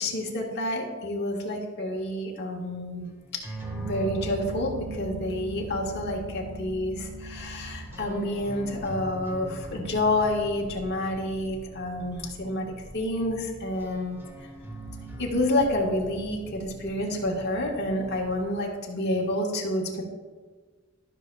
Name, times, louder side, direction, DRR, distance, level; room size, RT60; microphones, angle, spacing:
voice 1, 0.0-3.1 3.7-14.2 15.2-20.0, left 1 dB, 55° left, -1 dB, 1.6 m, -29 dB
sound 1, 3.3-18.4, right 1 dB, 10° right, 1.3 m, -40 dB
13.5 x 6.4 x 2.4 m, 1.4 s
head